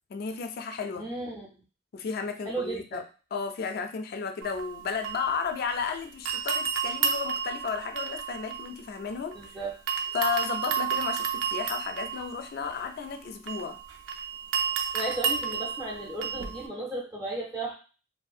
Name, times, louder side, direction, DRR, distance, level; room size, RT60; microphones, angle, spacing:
voice 1, 0.1-1.1 1.9-3.0 3.3-9.4 10.1-13.8, left 6 dB, 50° left, 7 dB, 0.3 m, -33 dB
voice 2, 0.9-1.6 2.5-3.0 9.3-9.8 14.9-17.8, right 2 dB, 20° right, -3 dB, 0.6 m, -35 dB
sound 1, 4.4-5.9 6.3-9.5 9.9-16.7, right 7 dB, 85° right, 0.4 m, -32 dB
2.6 x 2.6 x 2.3 m, 0.36 s
head